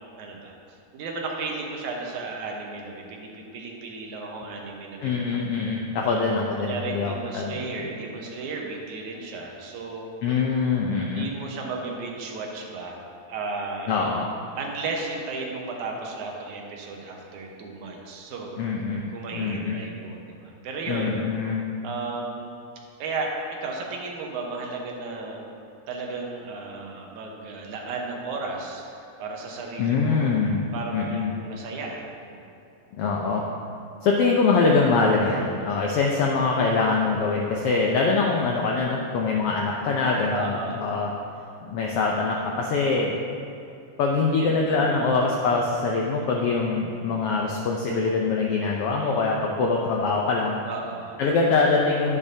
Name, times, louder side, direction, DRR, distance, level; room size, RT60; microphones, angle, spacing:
voice 1, 0.2-0.5 0.9-5.6 6.6-10.1 11.0-13.0 13.3-13.9 14.6-18.5 19.1-21.2 21.8-22.6 23.0-25.4 25.9-30.3 30.7-32.4 40.3-41.0 44.4-45.0 50.7-51.2, right 3 dB, 80° right, 0 dB, 2.5 m, -34 dB
voice 2, 5.0-7.8 10.2-11.3 13.9-14.3 18.6-19.0 19.3-19.8 20.9-21.6 29.8-30.6 30.9-31.3 33.0-33.4 34.0-41.1 41.6-43.1 44.0-50.6 51.2-52.2, left 4 dB, 80° left, -1 dB, 1.3 m, -23 dB
11.0 x 10.0 x 2.7 m, 2.6 s
omnidirectional pair, 3.4 m